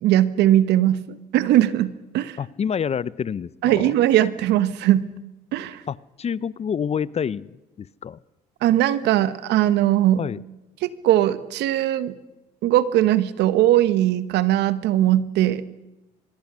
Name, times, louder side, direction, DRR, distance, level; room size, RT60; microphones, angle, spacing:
voice 1, 0.0-2.4 3.6-5.1 5.5-5.8 8.6-10.2 10.8-12.1 12.6-15.7, right 13 dB, 75° right, 15 dB, 1.2 m, -20 dB
voice 2, 2.4-4.0 5.9-8.2 10.2-10.4, left 7 dB, 35° left, 21 dB, 0.7 m, -28 dB
24.0 x 22.0 x 6.3 m, 1.0 s
supercardioid pair, 75°, 18 cm